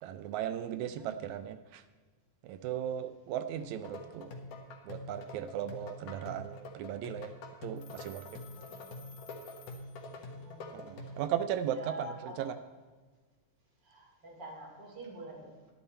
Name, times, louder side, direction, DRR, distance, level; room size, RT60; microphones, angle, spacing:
voice 1, 0.0-1.8 2.4-4.3 4.9-7.3 7.6-8.4 10.7-12.6, right 10 dB, 80° right, 10 dB, 1.8 m, -37 dB
voice 2, 0.8-1.2 3.4-4.0 8.5-9.0 10.1-11.2 11.7-12.5 13.8-15.7, equal, 35° right, -2 dB, 3.1 m, -48 dB
sound 1, 3.6-11.3, left 2 dB, 90° left, 2.9 m, -46 dB
Telephone, 7.8-10.5, left 5 dB, 70° left, 1.5 m, -56 dB
11.5 x 10.5 x 4.3 m, 1.4 s
omnidirectional pair, 3.6 m